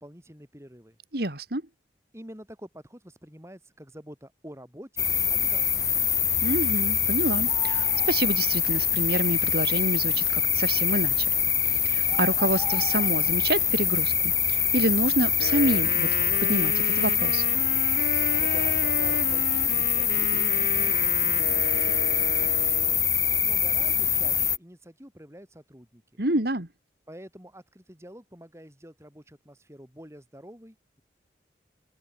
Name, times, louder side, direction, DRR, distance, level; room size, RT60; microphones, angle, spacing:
voice 1, 0.0-1.0 2.1-5.8 18.4-23.0 23.4-26.2 27.1-31.0, equal, 15° right, 5.6 m, -47 dB
voice 2, 1.1-1.6 6.4-11.3 11.6-14.1 14.5-16.1 16.4-17.5 26.2-26.7, right 1 dB, 60° right, 2.7 m, -27 dB
sound 1, 5.0-24.6, left 7 dB, 15° left, 0.6 m, -24 dB
Wind instrument woodwind instrument, 15.3-23.1, left 2 dB, 60° left, 5.3 m, -34 dB
head